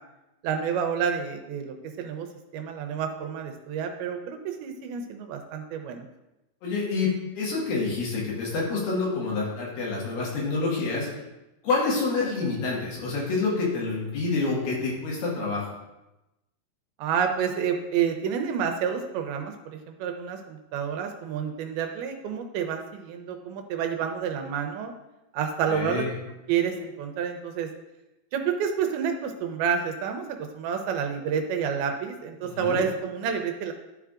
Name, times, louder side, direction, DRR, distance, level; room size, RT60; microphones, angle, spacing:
voice 1, 0.4-2.3 2.5-6.1 17.0-24.9 25.3-26.1 26.5-27.7 28.3-33.7, right 7 dB, 85° right, 5 dB, 2.5 m, -29 dB
voice 2, 6.6-11.1 11.6-15.7 25.7-26.1 32.4-32.8, left 3 dB, 65° left, -5 dB, 3.1 m, -27 dB
12.5 x 4.6 x 2.5 m, 0.98 s
omnidirectional pair, 4.5 m